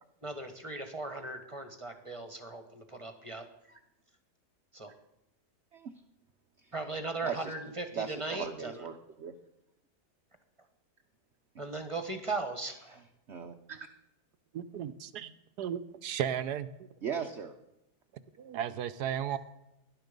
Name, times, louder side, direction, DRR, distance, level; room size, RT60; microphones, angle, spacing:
voice 1, 0.2-3.8 4.7-4.9 6.7-8.9 11.6-13.0, right 3 dB, 20° right, 7 dB, 1.5 m, -38 dB
voice 2, 7.2-7.5 7.9-9.3 13.3-13.9 15.2-15.3 17.0-17.6, right 7 dB, 50° right, 6 dB, 1.0 m, -38 dB
voice 3, 14.5-15.3 15.6-16.7 18.4-19.4, right 9 dB, 75° right, 12 dB, 1.3 m, -34 dB
18.0 x 11.0 x 5.3 m, 0.89 s
omnidirectional pair, 1.8 m